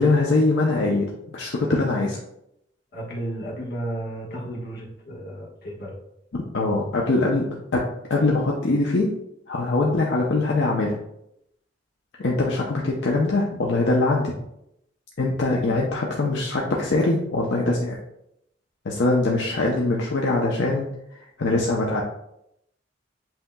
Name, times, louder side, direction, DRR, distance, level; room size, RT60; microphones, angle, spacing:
voice 1, 0.0-2.2 6.3-7.8 8.1-9.1 9.5-10.9 12.2-14.3 15.2-18.0 18.8-20.9 21.1-22.0, left 2 dB, 80° left, -2 dB, 0.6 m, -22 dB
voice 2, 2.9-6.0, right 1 dB, 60° left, -4 dB, 1.3 m, -33 dB
7.7 x 2.8 x 2.2 m, 0.80 s
head